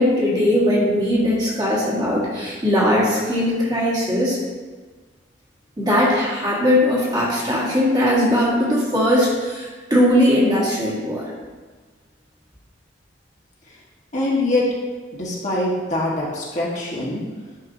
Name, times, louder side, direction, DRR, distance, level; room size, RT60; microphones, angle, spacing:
voice 1, 0.0-4.4 5.8-11.3, left 1 dB, 20° right, -6 dB, 1.6 m, -19 dB
voice 2, 14.1-14.6 15.1-17.2, left 2 dB, 40° left, -5 dB, 1.4 m, -23 dB
10.5 x 4.4 x 2.7 m, 1.4 s
head